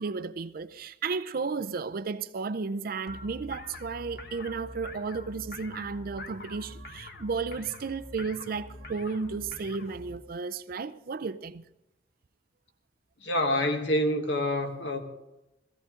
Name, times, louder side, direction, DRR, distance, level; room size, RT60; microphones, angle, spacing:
voice 1, 0.0-11.6, right 4 dB, 55° right, 0.5 m, -33 dB
sound 1, 3.1-10.2, left 1 dB, 55° left, 1.1 m, -44 dB
voice 2, 13.2-15.0, left 1 dB, 75° left, 1.4 m, -27 dB
16.5 x 14.5 x 3.7 m
head